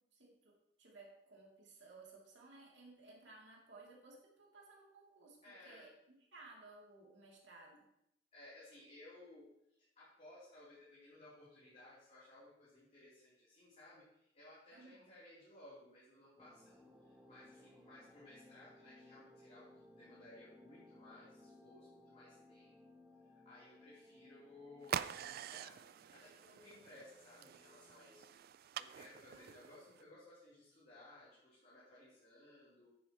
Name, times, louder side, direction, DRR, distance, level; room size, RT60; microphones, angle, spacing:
voice 1, 0.0-7.9 14.7-15.1 29.3-29.4, right 3 dB, 75° right, -3 dB, 2.9 m, -59 dB
voice 2, 5.4-5.9 8.3-22.7 23.2-28.2 28.5-32.9, left 2 dB, 40° left, -10 dB, 3.5 m, -59 dB
sound 1, 16.4-28.3, left 1 dB, 5° right, 1.1 m, -63 dB
sound 2, 24.8-30.0, right 9 dB, 55° right, 0.3 m, -46 dB
10.0 x 9.3 x 3.1 m, 0.79 s
head